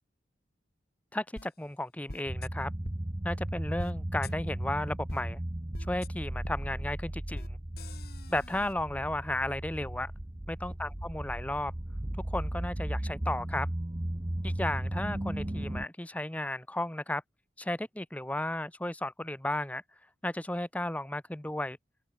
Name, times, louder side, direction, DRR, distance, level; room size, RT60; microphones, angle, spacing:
voice 1, 1.1-2.7 3.2-5.4 5.9-7.5 8.3-10.1 10.5-11.7 12.3-13.7 14.4-17.2 17.6-19.8 20.2-21.8, left 1 dB, 10° left, 0.9 m, -34 dB
sound 1, 1.4-1.5 2.1-2.5 2.8-3.0 3.8-3.9 4.2-4.3 5.1-5.2 5.7-6.1 6.4-6.5 7.3-7.5 7.8-8.7, left 2 dB, 55° left, 1.9 m, -43 dB
sound 2, 2.3-15.8, right 1 dB, 25° right, 0.9 m, -36 dB
open air
head